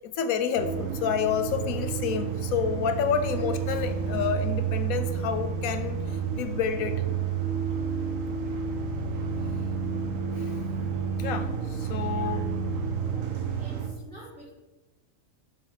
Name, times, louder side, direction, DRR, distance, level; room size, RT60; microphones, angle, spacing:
voice 1, 0.0-6.0 6.4-7.0 7.8-7.9 11.2-12.5, left 7 dB, 85° left, 8 dB, 1.1 m, -29 dB
sound 1, 0.6-13.9, right 6 dB, 75° right, 1.3 m, -30 dB
voice 2, 12.1-12.5 13.5-14.5, equal, 5° right, -12 dB, 2.4 m, -47 dB
6.4 x 3.7 x 5.4 m, 1.1 s
omnidirectional pair, 1.4 m